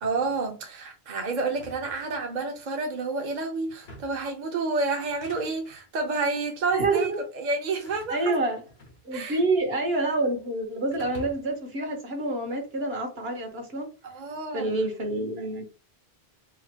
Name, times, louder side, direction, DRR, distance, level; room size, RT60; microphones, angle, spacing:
voice 1, 0.0-8.3 9.1-9.4 14.0-14.8, right 3 dB, 45° right, 0.8 m, -29 dB
sound 1, 1.5-2.7 3.7-4.3 5.0-5.8 6.6-7.0 7.9-9.4 9.6-10.4 10.9-11.7, equal, 75° left, 1.4 m, -48 dB
voice 2, 6.7-7.2 8.1-8.6 9.0-13.9 14.5-15.8, right 2 dB, 70° right, 1.5 m, -27 dB
4.9 x 2.5 x 2.8 m
omnidirectional pair, 1.1 m